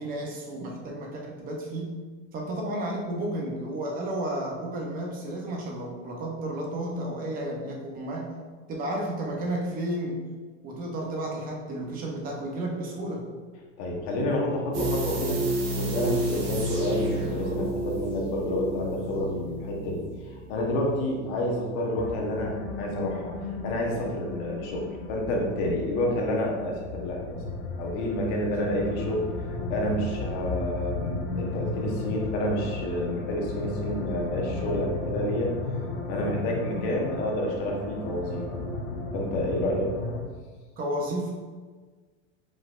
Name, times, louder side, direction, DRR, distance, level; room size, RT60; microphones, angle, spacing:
voice 1, 0.0-1.9 2.3-8.3 8.7-10.2 10.6-13.3 40.8-41.3, right 1 dB, 25° right, -1 dB, 0.7 m, -32 dB
voice 2, 13.8-15.4 15.7-20.0 20.3-23.3 23.6-27.4 27.8-29.3 29.7-35.5 36.1-38.6 39.1-39.9, left 1 dB, 50° left, -1 dB, 1.1 m, -29 dB
sound 1, 14.7-21.5 21.8-21.9, right 1 dB, 45° right, 1.1 m, -31 dB
sound 2, 22.0-40.2, left 3 dB, 30° left, 0.5 m, -34 dB
4.9 x 3.9 x 2.5 m, 1.4 s
supercardioid pair, 155°, 37 cm